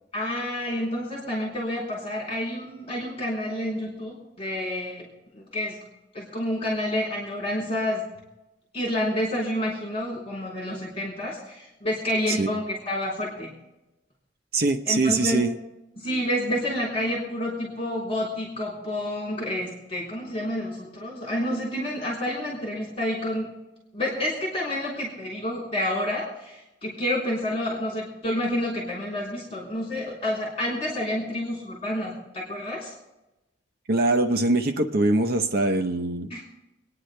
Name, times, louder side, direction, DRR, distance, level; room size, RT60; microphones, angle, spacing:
voice 1, 0.1-5.1 5.3-5.8 6.1-8.1 8.7-13.5 14.9-15.5 16.0-23.5 23.9-32.9 36.3-36.4, left 1 dB, 35° left, -4 dB, 3.8 m, -29 dB
voice 2, 14.5-15.5 33.9-36.3, right 2 dB, 55° right, 7 dB, 0.8 m, -23 dB
27.0 x 9.8 x 3.3 m, 0.95 s
head